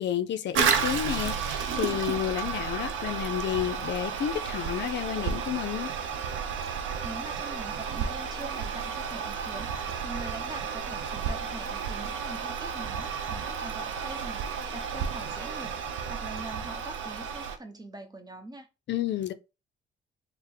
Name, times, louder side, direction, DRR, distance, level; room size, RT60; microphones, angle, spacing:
voice 1, 0.0-5.9 18.9-19.3, left 11 dB, 65° left, 0.5 m, -31 dB
Toilet flush, 0.5-17.6, right 6 dB, 80° right, 0.7 m, -32 dB
voice 2, 6.7-18.7, right 1 dB, 20° right, 0.9 m, -43 dB
3.6 x 2.0 x 4.3 m
cardioid pair, 90°, 20 cm